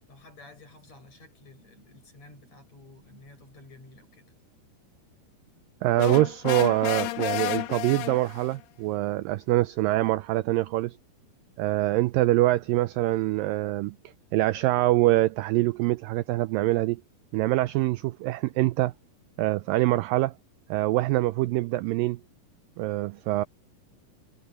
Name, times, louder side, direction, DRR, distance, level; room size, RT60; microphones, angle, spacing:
voice 1, 0.1-4.4, left 2 dB, 45° left, 8.0 m, -52 dB
voice 2, 5.8-11.0 11.6-14.0 14.3-17.0 17.3-18.9 19.4-20.3 20.7-22.2 22.8-23.4, right 18 dB, 85° right, 2.0 m, -24 dB
sound 1, 6.0-8.6, left 16 dB, 75° left, 2.2 m, -31 dB
omnidirectional pair, 4.5 m